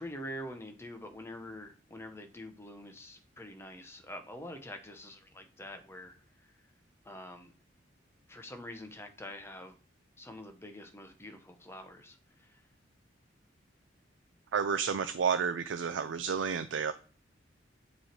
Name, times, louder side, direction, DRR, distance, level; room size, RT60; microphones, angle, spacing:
voice 1, 0.0-6.5 7.0-7.5 8.3-9.8 10.2-12.6, left 1 dB, 15° left, 0.8 m, -46 dB
voice 2, 14.5-16.9, right 6 dB, 80° right, 0.4 m, -31 dB
7.6 x 3.2 x 4.5 m
head